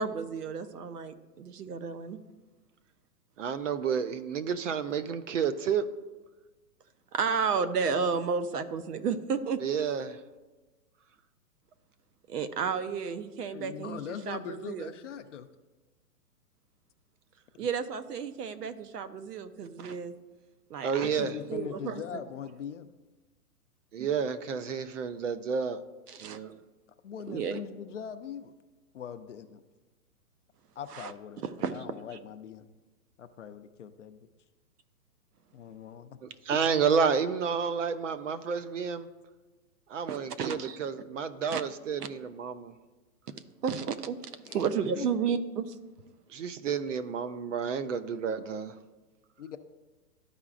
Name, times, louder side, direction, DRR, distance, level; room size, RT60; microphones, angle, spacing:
voice 1, 0.0-2.2 7.1-9.6 12.3-14.9 17.6-20.1 20.7-22.2 24.0-24.1 26.1-26.4 27.3-27.6 30.9-31.1 31.4-31.7 40.1-40.8 41.5-41.6 42.0-42.1 43.6-44.2 44.5-45.7, right 6 dB, 80° right, 11 dB, 0.8 m, -32 dB
voice 2, 3.4-5.9 9.6-10.2 20.8-21.4 23.9-25.8 26.2-26.6 36.2-39.1 39.9-42.7 46.3-48.8, right 6 dB, 50° right, 12 dB, 0.5 m, -30 dB
voice 3, 13.5-15.5 17.5-17.7 21.0-22.9 27.0-28.5 28.9-29.6 30.8-31.4 31.7-32.7 33.2-34.2 35.5-36.2 44.4-44.6 44.9-45.1 49.4-49.6, left 8 dB, 50° left, 9 dB, 0.5 m, -41 dB
13.0 x 4.9 x 2.4 m, 1.2 s
hypercardioid pair, 170°, 47 cm